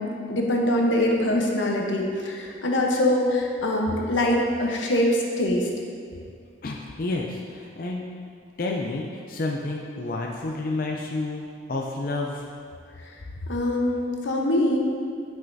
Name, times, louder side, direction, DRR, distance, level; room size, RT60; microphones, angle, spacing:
voice 1, 0.0-5.7 13.5-14.8, left 1 dB, 90° left, 0 dB, 0.9 m, -23 dB
voice 2, 6.6-8.0 8.6-12.5, left 2 dB, 50° left, 0 dB, 0.4 m, -30 dB
8.9 x 5.5 x 2.7 m, 2.2 s
head